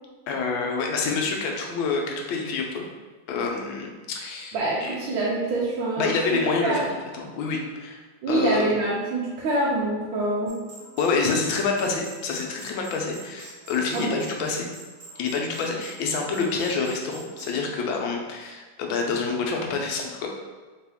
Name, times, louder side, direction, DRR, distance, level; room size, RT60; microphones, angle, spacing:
voice 1, 0.3-2.9 3.3-4.6 4.8-4.9 6.0-8.0 8.3-8.7 11.0-14.7 15.2-20.3, left 4 dB, 80° left, 1 dB, 1.4 m, -27 dB
voice 2, 4.5-6.8 8.2-10.5 13.9-14.2, right 2 dB, 90° right, -6 dB, 1.5 m, -26 dB
sound 1, 10.5-17.6, right 3 dB, 65° right, 1.2 m, -45 dB
3.6 x 3.0 x 3.4 m, 1.3 s
omnidirectional pair, 2.2 m